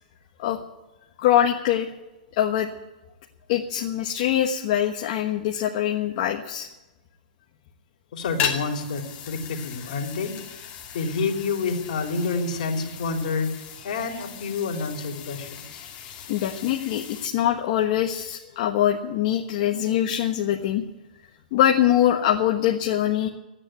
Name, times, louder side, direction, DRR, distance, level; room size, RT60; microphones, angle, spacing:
voice 1, 1.2-1.9 2.4-2.7 3.5-6.7 15.2-15.5 16.3-20.8 21.5-23.3, left 11 dB, 50° left, 1 dB, 1.3 m, -23 dB
voice 2, 8.1-10.3 10.9-15.8, left 4 dB, 65° left, 3 dB, 3.2 m, -28 dB
sound 1, 8.2-17.3, left 8 dB, 30° left, 2.3 m, -36 dB
16.0 x 9.8 x 8.9 m, 1.1 s
hypercardioid pair, 140°, 5 cm